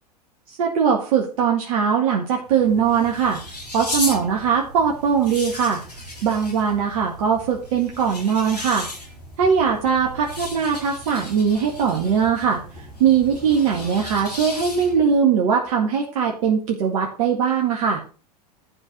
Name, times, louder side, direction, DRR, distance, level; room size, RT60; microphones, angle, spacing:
voice 1, 0.5-3.4 3.7-5.8 6.2-8.9 9.4-18.0, right 7 dB, 60° right, 0 dB, 2.0 m, -21 dB
sound 1, 2.4-15.1, left 1 dB, 85° left, 4.6 m, -35 dB
12.0 x 5.0 x 6.1 m, 0.37 s
figure-of-eight pair, 85°, 20 cm